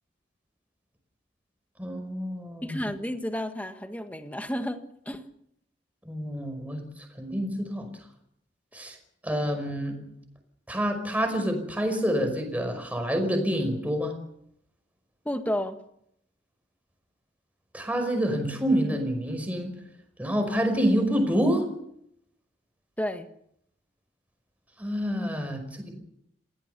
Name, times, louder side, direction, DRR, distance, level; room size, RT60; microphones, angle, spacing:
voice 1, 1.8-2.8 6.1-6.8 7.2-7.9 8.7-9.0 9.2-10.0 10.7-14.1 17.7-19.7 20.2-21.6 24.8-25.9, equal, 10° right, 5 dB, 5.4 m, -27 dB
voice 2, 2.6-5.3 15.2-15.8 23.0-23.3, equal, 10° left, 7 dB, 1.6 m, -31 dB
28.0 x 17.0 x 6.9 m, 0.74 s
head